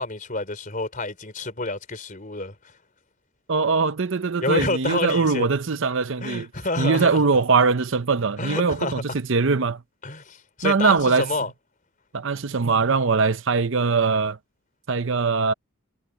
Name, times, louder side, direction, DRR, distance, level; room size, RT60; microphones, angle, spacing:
voice 1, 0.0-2.5 4.4-5.5 6.2-7.2 8.4-9.0 10.0-11.5, left 2 dB, 40° left, 4.1 m, -28 dB
voice 2, 3.5-6.5 6.8-9.8 10.6-11.3 12.1-14.4 14.9-15.5, right 4 dB, 60° right, 0.7 m, -21 dB
head